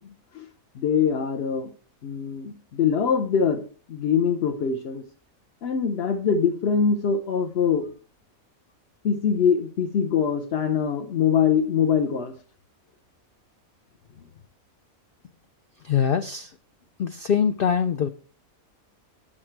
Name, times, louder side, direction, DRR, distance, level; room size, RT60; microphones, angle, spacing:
voice 1, 0.7-1.7 2.0-3.6 3.9-5.0 5.6-7.9 9.0-12.3, left 7 dB, 55° left, 3 dB, 0.9 m, -23 dB
voice 2, 15.8-16.5 17.0-18.1, left 7 dB, 75° left, 9 dB, 0.5 m, -23 dB
8.6 x 6.6 x 4.4 m, 0.38 s
omnidirectional pair, 1.5 m